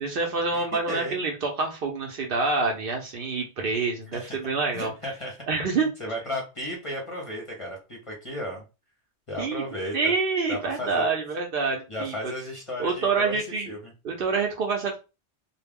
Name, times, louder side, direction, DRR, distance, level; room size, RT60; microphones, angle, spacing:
voice 1, 0.0-4.9 5.5-5.9 9.4-9.7 9.9-12.3 12.8-13.7 14.0-15.0, right 4 dB, 60° right, 2 dB, 0.7 m, -27 dB
voice 2, 0.5-1.1 4.1-4.4 4.7-5.4 5.7-8.6 9.3-10.1 10.5-11.1 11.9-13.9, left 1 dB, 35° left, -1 dB, 0.6 m, -34 dB
2.3 x 2.0 x 3.4 m, 0.29 s
omnidirectional pair, 1.2 m